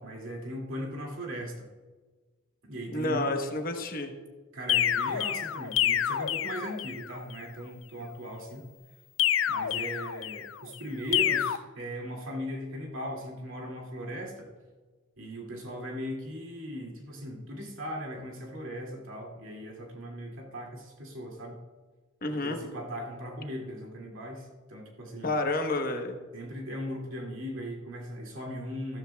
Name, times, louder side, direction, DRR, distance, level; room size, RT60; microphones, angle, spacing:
voice 1, 0.0-1.7 2.7-3.3 4.5-8.6 9.5-14.5 15.2-21.6 22.3-25.3 26.3-29.0, equal, 80° right, -1 dB, 2.3 m, -38 dB
voice 2, 2.9-4.1 22.2-22.6 25.2-26.2, left 2 dB, 45° left, 5 dB, 1.1 m, -29 dB
sound 1, 4.7-7.1 9.2-10.6 11.1-11.6, left 11 dB, 70° left, 0.4 m, -28 dB
13.5 x 13.5 x 2.3 m, 1.4 s
head